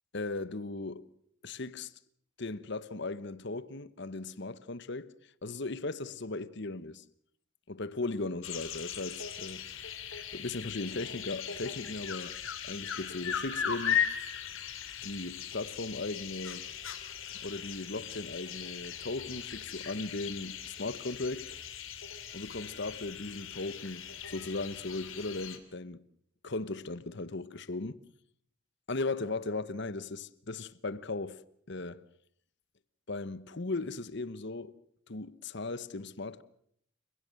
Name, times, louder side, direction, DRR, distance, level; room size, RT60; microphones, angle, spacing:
voice 1, 0.1-1.1 1.4-1.9 2.4-5.1 5.4-7.0 7.7-9.7 10.3-12.3 12.6-14.0 15.0-16.7 17.3-21.5 22.3-26.0 26.4-28.0 28.9-31.4 31.7-32.0 33.1-34.7 35.1-36.4, left 3 dB, 55° left, 1.0 m, -37 dB
sound 1, 8.4-25.6, left 8 dB, 70° left, 3.1 m, -38 dB
29.5 x 16.5 x 7.7 m
head